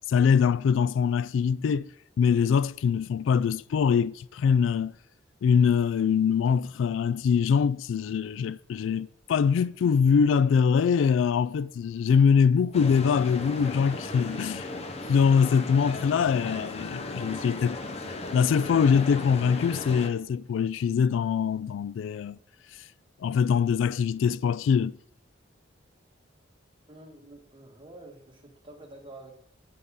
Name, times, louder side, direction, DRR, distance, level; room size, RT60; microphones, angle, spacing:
voice 1, 0.1-1.9 2.2-4.9 5.4-14.7 15.1-17.8 18.3-22.4 23.2-25.0, left 6 dB, 75° left, 0.3 m, -23 dB
sound 1, 12.7-20.1, left 2 dB, 35° left, 0.8 m, -36 dB
voice 2, 26.9-29.4, right 2 dB, 25° right, 1.7 m, -48 dB
9.4 x 8.5 x 3.7 m
head